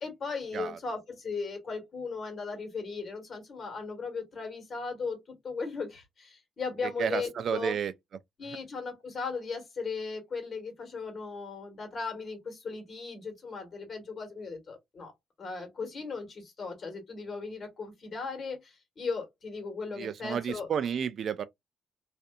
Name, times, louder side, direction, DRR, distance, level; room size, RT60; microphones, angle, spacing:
voice 1, 0.0-5.2 5.4-7.7 8.4-15.1 15.4-20.7, left 4 dB, 45° left, 1.5 m, -37 dB
voice 2, 6.8-7.9 20.0-21.4, right 7 dB, 60° right, 0.3 m, -31 dB
2.5 x 2.5 x 2.3 m
cardioid pair, 90°, 0 cm